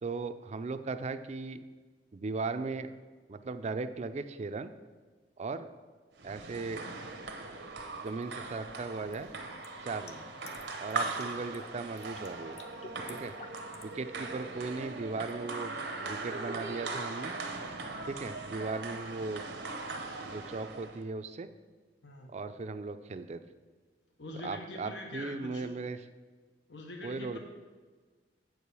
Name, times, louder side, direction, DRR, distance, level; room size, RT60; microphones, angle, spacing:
voice 1, 0.0-1.6 2.1-2.9 3.3-4.7 5.4-5.7 6.2-6.9 8.0-9.3 9.8-10.2 10.8-12.6 13.1-13.3 13.8-17.3 18.1-19.6 20.2-21.5 22.3-23.4 24.4-26.0 27.0-27.4, right 3 dB, 40° right, 10 dB, 0.4 m, -37 dB
sound 1, 6.2-21.0, right 3 dB, 80° right, 0.8 m, -40 dB
sound 2, 8.1-8.2 9.1-10.9 11.2-11.7 12.0-12.3 12.6-13.9, left 3 dB, 40° left, 0.7 m, -50 dB
voice 2, 22.0-22.3 24.2-25.7 26.7-27.4, left 2 dB, 90° left, 2 dB, 1.0 m, -44 dB
7.7 x 4.8 x 6.8 m, 1.4 s
head